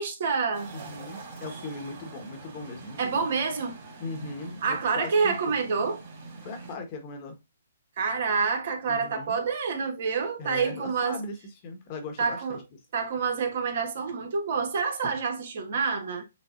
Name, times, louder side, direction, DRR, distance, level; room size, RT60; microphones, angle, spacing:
voice 1, 0.0-0.7 3.0-3.8 4.6-6.0 8.0-11.2 12.2-12.6 12.9-16.2, right 5 dB, 55° right, 1.2 m, -27 dB
sound 1, 0.5-6.8, right 3 dB, 30° right, 2.3 m, -44 dB
voice 2, 0.7-3.3 4.0-5.6 6.4-7.4 8.9-9.4 10.4-11.4 11.6-12.6, left 3 dB, 35° left, 1.2 m, -39 dB
6.4 x 2.3 x 2.4 m
hypercardioid pair, 145°, 0 cm